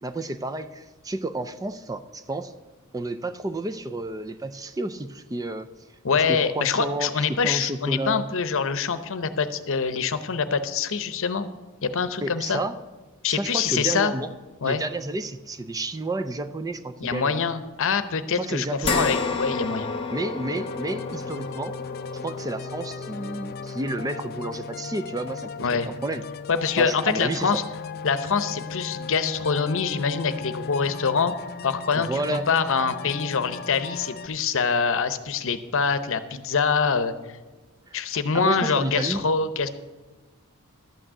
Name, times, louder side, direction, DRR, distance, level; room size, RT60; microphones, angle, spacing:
voice 1, 0.0-2.5 2.9-5.7 6.1-8.3 12.2-12.8 13.3-14.3 14.6-17.3 18.3-19.1 20.1-21.7 22.2-26.2 26.8-27.5 32.0-32.5 37.9-38.0 38.3-39.3, right 2 dB, 15° right, 11 dB, 0.4 m, -31 dB
voice 2, 6.0-11.5 11.8-12.6 13.2-14.1 14.6-14.8 17.0-19.9 25.6-25.9 26.5-27.6 28.0-31.3 31.6-37.1 37.9-39.7, left 5 dB, 65° left, 11 dB, 0.8 m, -25 dB
sound 1, 18.8-27.4 27.9-28.0 29.4-29.5, left 4 dB, 25° left, 1.0 m, -33 dB
sound 2, 20.6-34.3, left 5 dB, 45° left, 0.4 m, -37 dB
12.0 x 6.2 x 8.1 m, 1.2 s
head